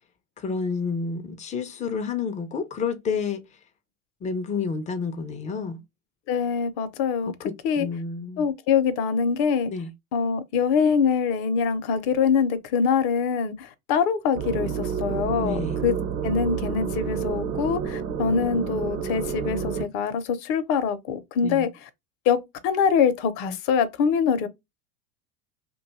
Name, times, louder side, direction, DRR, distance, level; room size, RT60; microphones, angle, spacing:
voice 1, 0.4-3.4 4.2-5.8 7.3-8.5 9.7-9.9 15.4-15.8 21.4-21.7, left 5 dB, 20° left, 0.3 m, -30 dB
voice 2, 6.3-7.3 7.6-7.9 8.4-9.7 10.1-15.9 16.2-21.9 22.3-22.4 22.6-24.5, left 6 dB, 55° left, 0.6 m, -24 dB
sound 1, 14.3-19.9, right 7 dB, 65° right, 0.9 m, -29 dB
2.6 x 2.3 x 3.9 m
hypercardioid pair, 100°, 46 cm